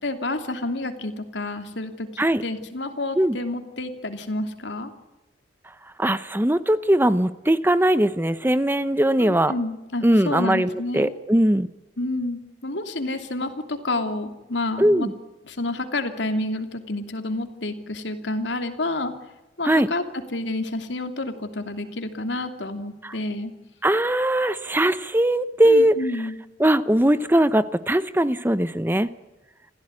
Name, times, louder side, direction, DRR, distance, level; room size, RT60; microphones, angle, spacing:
voice 1, 0.0-4.9 9.2-11.1 12.0-15.1 15.4-19.1 19.6-20.0 20.3-23.5 25.6-26.3, left 2 dB, 70° left, 7 dB, 3.0 m, -29 dB
voice 2, 6.0-9.5 10.0-11.7 14.8-15.1 19.6-19.9 23.0-23.1 23.8-25.9 26.6-29.1, right 1 dB, 10° right, 14 dB, 0.8 m, -20 dB
26.5 x 16.0 x 9.9 m, 1.0 s
head